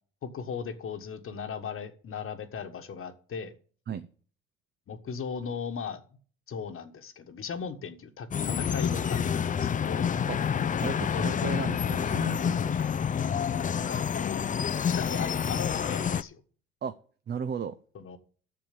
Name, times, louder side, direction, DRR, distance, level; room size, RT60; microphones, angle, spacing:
voice 1, 0.2-3.5 4.9-6.0 6.5-10.2 11.1-11.5 13.9-14.5 14.8-16.4 17.9-18.2, left 6 dB, 45° left, 7 dB, 1.4 m, -37 dB
sound 1, 8.3-16.2, left 7 dB, 25° left, 0.5 m, -28 dB
voice 2, 10.8-12.8 16.8-16.9 17.3-17.8, right 7 dB, 35° right, 10 dB, 0.7 m, -35 dB
7.7 x 6.9 x 8.3 m, 0.43 s
hypercardioid pair, 65°, 31 cm